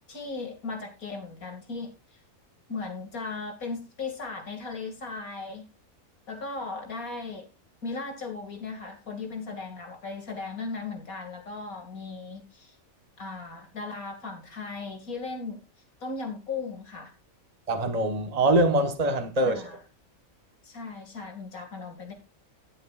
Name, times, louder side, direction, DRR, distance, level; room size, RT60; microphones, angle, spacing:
voice 1, 0.1-1.9 2.7-5.7 6.3-7.5 7.8-12.8 13.2-15.6 16.0-17.1 19.4-19.8 20.6-22.1, left 4 dB, 85° left, 2.8 m, -37 dB
voice 2, 17.7-19.8, right 1 dB, 30° right, 1.3 m, -24 dB
19.5 x 7.8 x 2.4 m
omnidirectional pair, 1.4 m